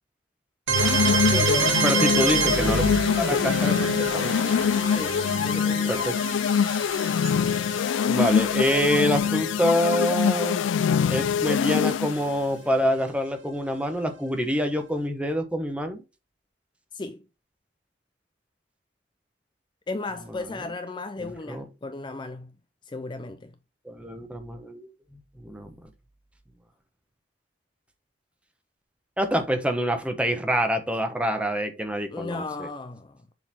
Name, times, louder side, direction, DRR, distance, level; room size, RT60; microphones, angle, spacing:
sound 1, 0.7-12.3, left 7 dB, 90° left, 0.3 m, -24 dB
sound 2, 0.7-10.4, right 4 dB, 85° right, 1.5 m, -28 dB
voice 1, 1.3-2.6 4.8-6.2 16.9-17.2 19.9-22.5 22.9-23.5 32.1-33.2, left 3 dB, 25° left, 0.4 m, -34 dB
voice 2, 1.8-2.8 3.2-4.3 5.9-6.2 8.1-10.6 11.1-16.0 21.2-21.6 23.9-24.9 25.1-25.7 29.2-32.7, equal, 5° right, 1.0 m, -26 dB
7.0 x 4.0 x 4.3 m
head